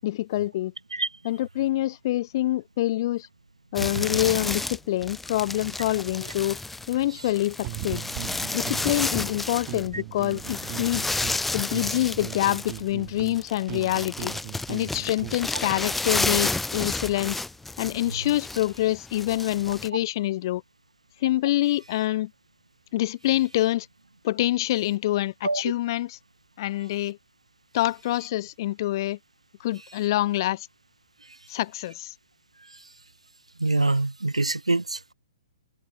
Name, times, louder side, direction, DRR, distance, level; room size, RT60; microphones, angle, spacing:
voice 1, 0.0-0.7 1.2-3.3 3.7-6.6 6.9-8.0 8.5-11.1 11.5-14.3 14.7-17.4 17.8-20.6 21.2-22.3 22.9-23.9 24.2-26.2 26.6-27.2 27.7-29.2 29.6-30.7 31.5-32.1, left 15 dB, 40° left, 7.0 m, -26 dB
sound 1, 3.8-9.9 10.2-19.9, left 2 dB, 5° left, 6.3 m, -31 dB
sound 2, 7.6-9.3 9.7-11.4 11.7-15.4, right 40 dB or more, 30° right, 4.2 m, -38 dB
voice 2, 33.6-35.1, right 2 dB, 80° right, 5.0 m, -25 dB
figure-of-eight pair, 120°, 3 cm